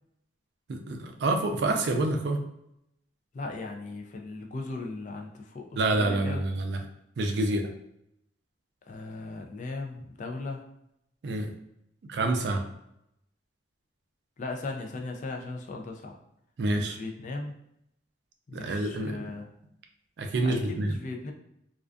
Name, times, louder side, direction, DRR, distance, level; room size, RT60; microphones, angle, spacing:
voice 1, 0.7-2.4 5.8-6.8 7.2-7.7 11.2-11.5 12.1-12.6 16.6-17.0 18.5-19.2 20.2-20.9, right 2 dB, 65° right, 5 dB, 0.3 m, -27 dB
voice 2, 3.3-6.4 8.9-10.6 14.4-16.2 16.7-17.5 18.5-19.5 20.4-21.3, left 3 dB, 40° left, 3 dB, 0.3 m, -37 dB
2.4 x 2.3 x 2.4 m, 0.77 s
head